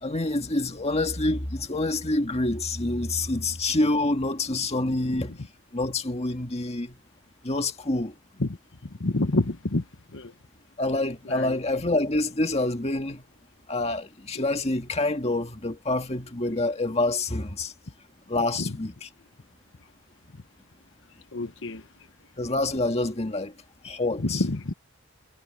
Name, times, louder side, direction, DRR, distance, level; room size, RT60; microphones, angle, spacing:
voice 1, 0.0-5.4 5.7-7.0 7.4-8.1 10.8-13.2 13.7-17.7 18.3-18.9 22.4-23.5 23.8-24.4, left 2 dB, 30° left, 1.8 m, -27 dB
voice 2, 8.8-9.9 10.1-10.3 11.2-11.6 18.6-18.8 21.3-21.9 24.2-24.7, left 2 dB, 55° left, 1.2 m, -28 dB
head